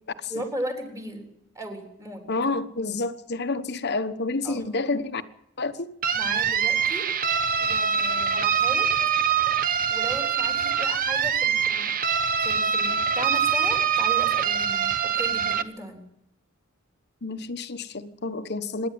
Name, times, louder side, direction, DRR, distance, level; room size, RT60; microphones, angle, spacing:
voice 1, 0.3-1.3 1.5-2.2 4.4-4.6 6.1-7.1 7.6-8.9 9.9-11.9 12.4-16.0, equal, 15° right, 3.7 m, -36 dB
voice 2, 2.3-5.2 5.6-5.9 17.2-18.9, left 3 dB, 50° left, 1.1 m, -29 dB
sound 1, 6.0-15.6, right 7 dB, 40° right, 0.9 m, -24 dB
26.5 x 10.5 x 9.4 m
head